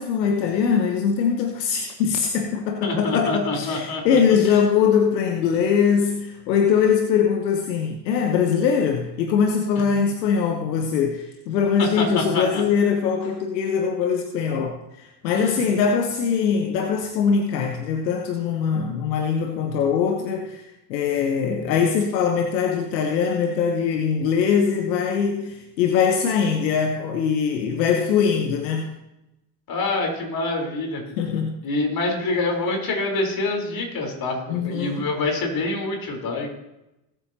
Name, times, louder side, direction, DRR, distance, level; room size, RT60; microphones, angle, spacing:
voice 1, 0.0-28.9 31.2-31.6 34.5-35.0, left 6 dB, 80° left, 4 dB, 1.1 m, -22 dB
voice 2, 2.8-4.2 4.4-4.6 11.8-12.6 15.3-15.6 29.7-31.0 31.6-36.5, left 2 dB, 45° left, 1 dB, 4.1 m, -26 dB
19.5 x 8.6 x 2.9 m, 0.92 s
hypercardioid pair, 70°, 49 cm